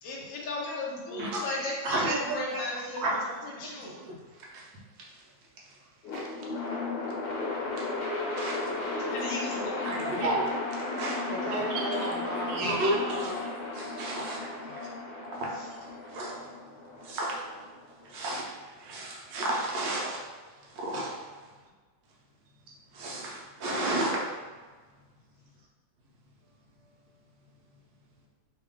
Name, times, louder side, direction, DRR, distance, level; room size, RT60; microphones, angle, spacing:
voice 1, 0.0-4.0 8.9-10.2 14.6-15.0 15.5-15.7, left 2 dB, 85° left, -2 dB, 0.7 m, -37 dB
voice 2, 1.8-2.4 3.0-3.4 3.6-3.7 4.0-4.2 4.5-4.7 6.1-6.3 7.7-7.9 8.3-8.7 9.8-11.2 11.9-12.1 12.5-14.4 14.8-14.9 15.3-15.8 16.0-16.5 17.0-17.4 18.0-20.2 20.6-21.2 22.9-24.3, right 1 dB, 70° right, -3 dB, 1.4 m, -32 dB
sound 1, 6.0-18.2, left 3 dB, 60° left, 1.4 m, -35 dB
voice 3, 11.3-13.4, right 2 dB, 85° right, -1 dB, 1.5 m, -36 dB
3.6 x 2.4 x 3.5 m, 1.4 s
omnidirectional pair, 2.2 m